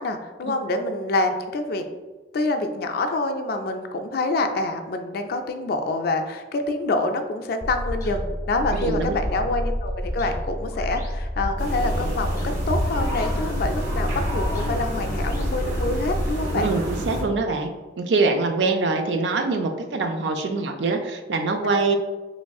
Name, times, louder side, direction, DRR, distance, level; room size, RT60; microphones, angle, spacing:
voice 1, 0.0-1.9 2.3-16.7, left 2 dB, 55° left, 6 dB, 0.3 m, -26 dB
sound 1, 7.6-16.3, equal, 15° left, 0.7 m, -29 dB
voice 2, 8.8-9.2 16.5-22.0, right 3 dB, 70° right, 6 dB, 0.4 m, -24 dB
sound 2, 11.6-17.2, equal, 90° right, 1.0 m, -29 dB
3.5 x 3.1 x 2.3 m, 1.3 s
head